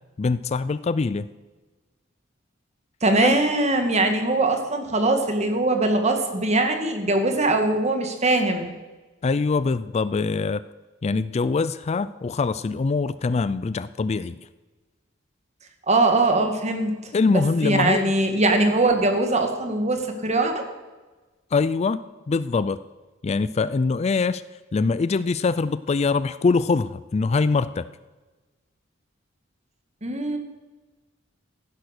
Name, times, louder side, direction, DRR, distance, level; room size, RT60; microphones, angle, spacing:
voice 1, 0.2-1.3 3.2-3.4 9.2-10.6 11.0-14.4 17.1-18.1 21.5-22.0 22.3-22.8 23.2-24.4 24.7-27.9, left 4 dB, 35° left, 16 dB, 0.4 m, -23 dB
voice 2, 3.0-8.7 15.9-17.0 17.3-20.6 30.0-30.4, right 2 dB, 35° right, 5 dB, 1.9 m, -21 dB
15.5 x 10.5 x 6.5 m, 1.2 s
head